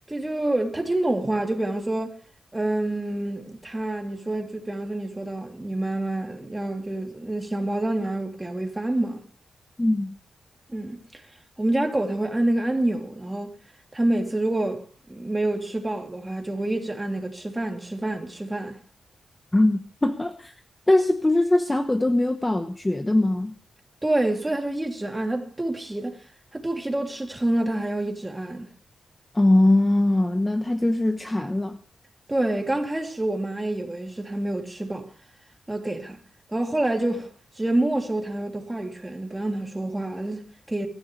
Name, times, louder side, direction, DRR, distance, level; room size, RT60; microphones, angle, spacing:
voice 1, 0.1-2.2 2.5-9.2 10.7-11.0 11.6-13.5 13.9-18.8 24.0-26.2 26.5-28.7 32.3-35.1 35.7-36.2 36.5-37.3 37.6-40.9, right 1 dB, 15° right, 3.0 m, -27 dB
voice 2, 9.8-10.1 19.5-20.5 20.9-23.5 29.3-31.8, left 1 dB, 15° left, 1.0 m, -21 dB
24.0 x 14.0 x 3.3 m
wide cardioid pair, 115°, 0 cm